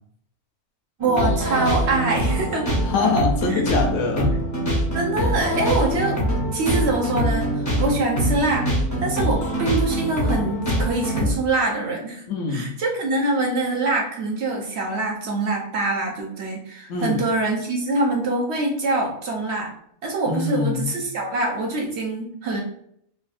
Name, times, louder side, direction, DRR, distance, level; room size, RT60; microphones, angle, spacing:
sound 1, 1.0-11.3, equal, 25° left, 0.4 m, -24 dB
voice 1, 1.0-2.7 3.5-3.6 4.9-6.2 6.5-8.7 9.0-12.2 12.5-19.7 20.0-22.6, right 2 dB, 60° right, 0 dB, 0.8 m, -24 dB
voice 2, 2.9-4.4 12.3-12.7 16.9-17.2 20.3-20.9, left 4 dB, 75° left, 4 dB, 0.9 m, -23 dB
3.3 x 2.3 x 2.4 m, 0.68 s
omnidirectional pair, 1.4 m